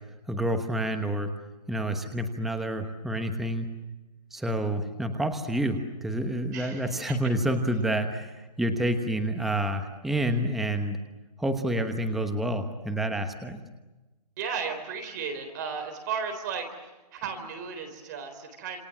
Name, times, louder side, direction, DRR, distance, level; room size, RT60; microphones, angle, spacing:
voice 1, 0.3-1.3 1.7-3.7 4.3-11.0 11.4-13.6, right 1 dB, ahead, 6 dB, 1.1 m, -28 dB
voice 2, 6.5-7.2 14.4-18.8, right 6 dB, 30° right, 6 dB, 3.9 m, -35 dB
28.0 x 27.5 x 7.3 m, 1.1 s
hypercardioid pair, 165°, 20 cm